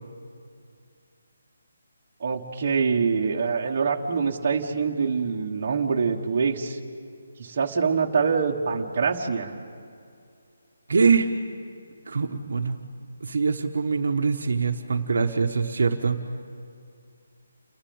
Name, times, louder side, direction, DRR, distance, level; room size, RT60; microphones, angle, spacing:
voice 1, 2.2-6.8 7.4-9.5, right 5 dB, 30° right, 0 dB, 1.3 m, -25 dB
voice 2, 10.9-11.3 12.1-12.8 13.2-16.2, right 5 dB, 55° right, 5 dB, 1.1 m, -23 dB
29.0 x 11.5 x 8.6 m, 2.4 s
hypercardioid pair, 180°, 0 cm